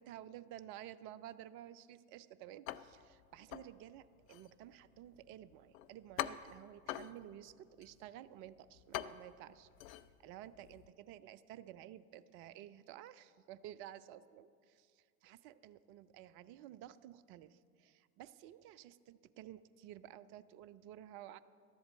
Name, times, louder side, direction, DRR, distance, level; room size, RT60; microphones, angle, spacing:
voice 1, 0.0-21.4, right 12 dB, 30° right, 14 dB, 0.4 m, -53 dB
sound 1, 2.7-10.9, left 13 dB, 65° left, 0.6 m, -47 dB
12.0 x 7.9 x 7.7 m, 2.1 s
figure-of-eight pair, 80°, 45 cm